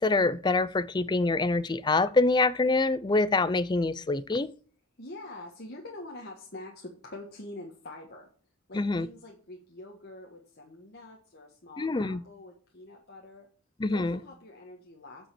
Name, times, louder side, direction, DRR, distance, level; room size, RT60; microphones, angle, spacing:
voice 1, 0.0-4.5 8.7-9.1 11.8-12.2 13.8-14.2, left 3 dB, 20° left, 0.4 m, -25 dB
voice 2, 5.0-8.3 8.7-13.5 13.9-15.3, left 2 dB, 50° left, 1.4 m, -45 dB
8.7 x 5.4 x 6.9 m
head